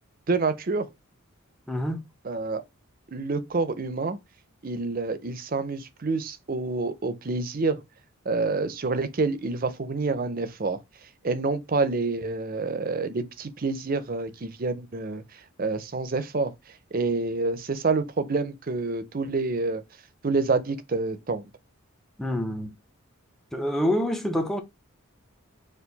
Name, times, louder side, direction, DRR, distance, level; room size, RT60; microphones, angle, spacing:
voice 1, 0.3-0.9 2.2-2.6 3.1-4.2 4.6-7.8 8.3-10.8 11.2-16.5 16.9-19.8 20.2-21.4, right 3 dB, 40° right, 0.5 m, -27 dB
voice 2, 1.7-2.0 22.2-22.7 23.5-24.6, equal, ahead, 0.6 m, -26 dB
4.5 x 2.5 x 3.9 m
head